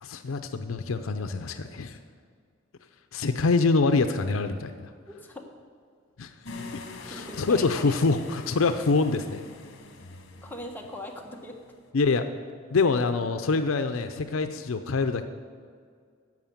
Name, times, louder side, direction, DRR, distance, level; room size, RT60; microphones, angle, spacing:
voice 1, 0.0-2.0 3.1-4.9 6.2-6.3 7.0-9.5 11.9-12.3 12.7-15.2, left 4 dB, 90° left, 8 dB, 0.5 m, -25 dB
voice 2, 5.1-5.5 7.1-8.2 10.4-11.6 14.5-14.8, left 1 dB, 10° left, 0 dB, 1.3 m, -41 dB
sound 1, 6.4-11.9, left 3 dB, 65° left, 1.3 m, -44 dB
11.0 x 7.6 x 7.2 m, 2.1 s
head